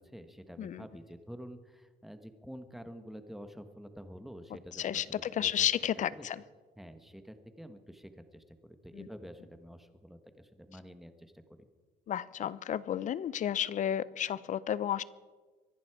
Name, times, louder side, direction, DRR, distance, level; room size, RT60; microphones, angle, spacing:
voice 1, 0.0-5.7 6.2-6.3 6.8-11.7, equal, ahead, 8 dB, 1.3 m, -48 dB
voice 2, 4.7-6.4 8.9-9.1 12.1-15.0, left 10 dB, 50° left, 19 dB, 0.6 m, -32 dB
24.5 x 11.0 x 4.9 m, 1.4 s
cardioid pair, 110°, 17 cm